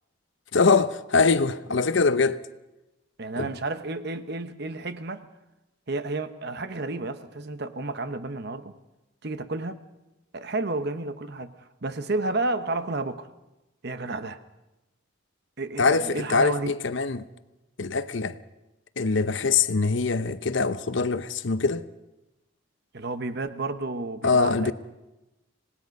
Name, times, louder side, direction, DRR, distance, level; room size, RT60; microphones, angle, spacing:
voice 1, 0.5-2.4 3.4-3.5 15.8-17.2 17.8-18.4 19.0-21.9 24.2-24.7, left 4 dB, 60° left, 0.7 m, -23 dB
voice 2, 3.2-5.2 5.9-8.7 9.2-9.8 10.3-11.5 11.8-13.3 13.8-14.4 15.6-16.7 22.9-24.7, right 2 dB, 50° right, 1.0 m, -31 dB
26.0 x 19.0 x 5.3 m
head